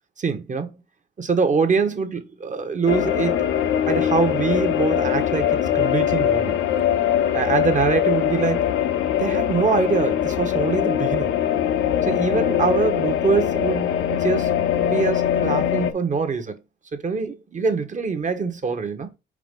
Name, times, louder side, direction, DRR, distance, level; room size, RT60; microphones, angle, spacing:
voice 1, 0.2-0.7 1.2-3.4 3.9-6.5 7.3-8.7 9.2-11.3 12.0-16.6 16.9-19.1, right 5 dB, 40° right, 1.3 m, -24 dB
sound 1, 2.9-15.9, left 10 dB, 90° left, 0.9 m, -22 dB
5.0 x 4.4 x 5.3 m
cardioid pair, 90°, 20 cm